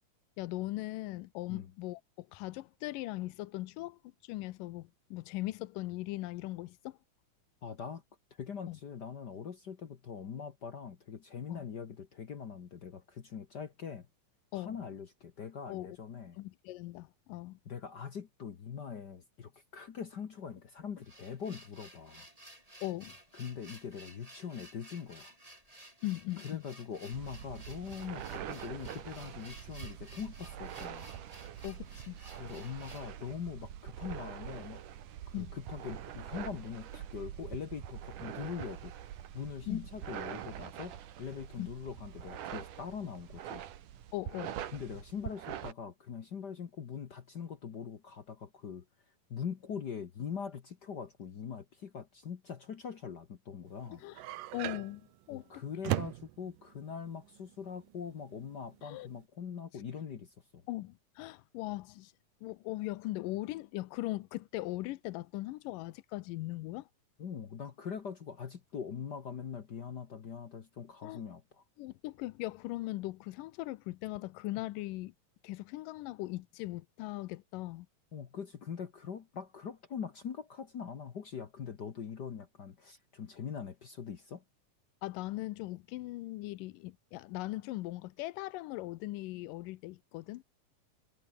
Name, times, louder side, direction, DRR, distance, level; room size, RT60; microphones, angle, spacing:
voice 1, 0.4-7.0 8.7-8.8 11.5-11.7 14.5-14.8 15.7-15.9 16.4-17.6 22.8-23.2 26.0-26.6 31.6-32.2 35.3-35.6 39.7-39.8 41.6-41.7 44.1-44.6 54.0-54.2 54.5-55.0 55.3-55.9 58.8-59.1 60.7-62.1 62.4-66.9 71.0-71.2 71.8-75.1 75.4-77.9 85.0-90.4, left 18 dB, 85° left, 2.4 m, -39 dB
voice 2, 7.6-8.0 8.3-14.1 14.5-16.4 17.6-22.3 23.3-25.3 26.4-31.1 32.3-34.8 35.3-38.9 39.3-43.6 44.7-48.8 49.3-54.0 55.3-60.6 67.2-71.6 78.1-84.4, left 7 dB, 60° left, 1.1 m, -42 dB
sound 1, 20.8-33.1, right 1 dB, 10° right, 6.3 m, -55 dB
sound 2, 27.1-45.7, right 10 dB, 75° right, 3.2 m, -44 dB
sound 3, 53.7-59.3, right 15 dB, 90° right, 2.6 m, -39 dB
omnidirectional pair, 3.8 m